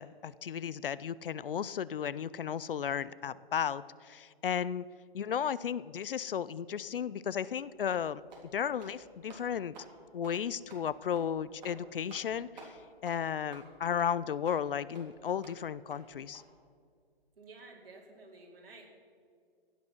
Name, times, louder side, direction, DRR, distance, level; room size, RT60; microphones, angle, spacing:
voice 1, 0.0-4.9 5.1-8.2 8.5-9.7 10.1-12.8 13.0-16.4, left 8 dB, 60° left, 19 dB, 0.5 m, -34 dB
sound 1, 7.4-7.5 7.9-8.0 8.3-8.5 8.7-9.0 9.3-9.4 9.7-9.9 10.2-10.4 10.7-10.8 11.1-11.3 11.6-11.8 12.1-12.3 12.6-12.7 13.1-13.2 13.5-13.7 14.0-14.1 14.5-14.6 14.9-15.1 15.4-15.6 15.9-16.0 16.3-16.4, right 3 dB, 45° right, 3.3 m, -52 dB
voice 2, 17.4-18.9, right 3 dB, 65° right, -2 dB, 4.4 m, -52 dB
16.5 x 10.5 x 6.0 m, 2.1 s
hypercardioid pair, 170°, 31 cm